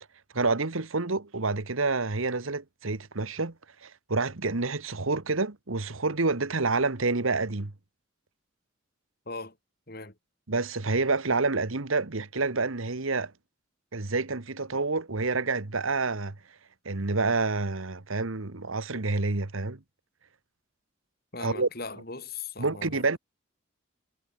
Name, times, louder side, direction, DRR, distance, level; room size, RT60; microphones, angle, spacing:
voice 1, 0.3-3.5 3.8-7.7 10.5-13.3 13.9-16.3 16.8-19.8 21.4-21.7 22.6-23.2, right 3 dB, 80° right, 1.5 m, -28 dB
voice 2, 9.3-9.6 9.9-10.1 21.3-23.0, left 4 dB, 45° left, 4.3 m, -39 dB
head